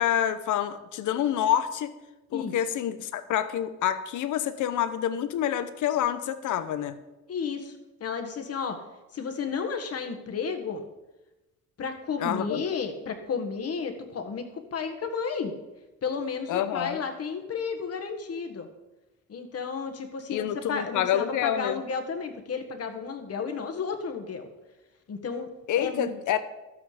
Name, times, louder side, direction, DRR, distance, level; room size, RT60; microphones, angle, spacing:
voice 1, 0.0-1.9 2.3-7.0 12.2-12.6 16.5-17.0 20.3-21.8 25.7-26.4, left 10 dB, 80° left, 11 dB, 0.9 m, -27 dB
voice 2, 7.3-8.8 9.1-10.9 11.8-15.5 16.0-18.7 19.3-24.5 25.1-25.5 25.8-26.1, left 5 dB, 55° left, 6 dB, 1.6 m, -32 dB
12.0 x 8.5 x 5.0 m, 1.0 s
cardioid pair, 90°, 30 cm